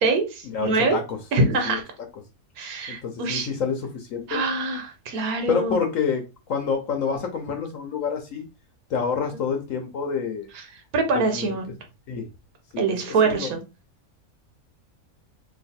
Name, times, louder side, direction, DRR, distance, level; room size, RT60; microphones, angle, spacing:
voice 1, 0.0-1.0 1.3-1.8 2.6-3.5 4.3-5.8 9.3-9.4 10.5-10.6 10.9-11.7 12.8-13.6, right 3 dB, 90° right, 1.3 m, -24 dB
voice 2, 0.5-1.2 1.6-1.8 2.9-4.4 5.5-8.4 8.9-10.5 11.3-11.5 12.1-12.3 12.7-13.5, left 6 dB, 70° left, 1.1 m, -28 dB
3.2 x 2.6 x 4.1 m
omnidirectional pair, 1.5 m